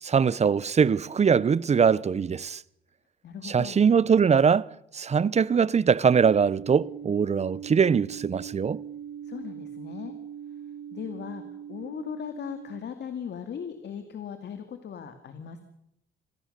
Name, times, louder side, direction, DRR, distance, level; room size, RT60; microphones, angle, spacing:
voice 1, 0.0-2.6 3.4-4.7 4.9-8.8, right 6 dB, 35° right, 0.8 m, -22 dB
voice 2, 3.2-3.8 9.2-10.1 10.9-11.4 11.7-15.6, left 8 dB, 60° left, 2.3 m, -38 dB
sound 1, 6.1-12.8, right 8 dB, 65° right, 1.6 m, -41 dB
27.0 x 17.0 x 6.7 m
cardioid pair, 90°, 20 cm